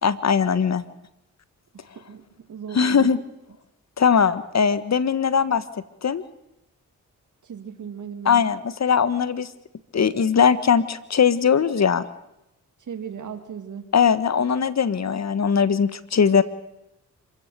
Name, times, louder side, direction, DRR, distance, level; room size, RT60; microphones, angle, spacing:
voice 1, 0.0-0.8 2.7-3.2 4.0-5.6 6.0-6.2 8.2-9.5 9.9-12.1 13.9-16.4, left 6 dB, 55° left, 14 dB, 1.4 m, -20 dB
voice 2, 1.7-3.1 7.4-8.4 12.8-13.9, right 7 dB, 65° right, 8 dB, 2.0 m, -37 dB
26.0 x 16.0 x 6.8 m, 0.89 s
cardioid pair, 50°, 32 cm